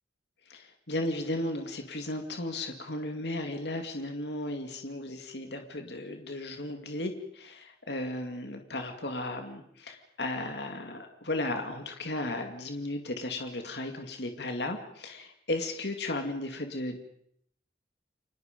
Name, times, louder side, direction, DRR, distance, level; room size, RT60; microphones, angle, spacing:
voice 1, 0.5-17.0, left 1 dB, 65° left, 5 dB, 2.3 m, -35 dB
30.0 x 24.5 x 5.3 m, 0.68 s
head